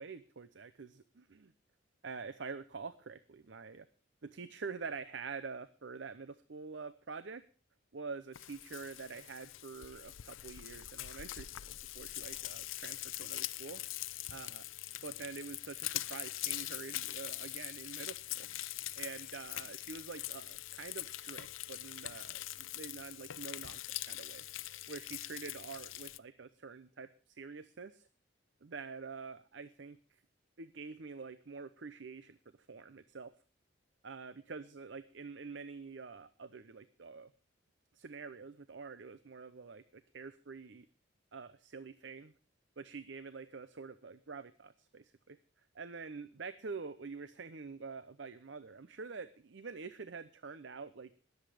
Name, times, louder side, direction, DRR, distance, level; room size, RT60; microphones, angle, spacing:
voice 1, 0.0-1.5 2.0-3.9 4.2-7.4 7.9-13.8 14.3-14.7 15.0-18.5 19.0-23.8 24.1-24.5 24.9-28.1 28.6-30.2 30.6-32.4 32.7-33.3 34.0-37.3 37.9-40.9 41.3-42.3 42.8-45.4 45.7-51.1, right 4 dB, 60° right, 13 dB, 0.7 m, -46 dB
Frying (food), 8.3-26.2, left 15 dB, 85° left, 0.6 m, -43 dB
21.0 x 8.2 x 4.9 m, 0.37 s
head